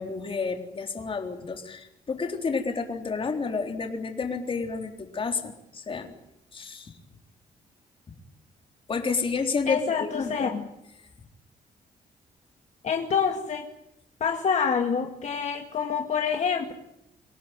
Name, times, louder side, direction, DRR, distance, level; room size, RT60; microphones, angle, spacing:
voice 1, 0.0-6.1 6.5-6.9 8.9-10.5, left 4 dB, 40° left, 4 dB, 3.8 m, -30 dB
voice 2, 9.7-10.7 12.8-13.7 14.2-16.7, left 6 dB, 55° left, 4 dB, 2.2 m, -27 dB
25.5 x 18.0 x 9.1 m, 0.84 s
cardioid pair, 105°, 15 cm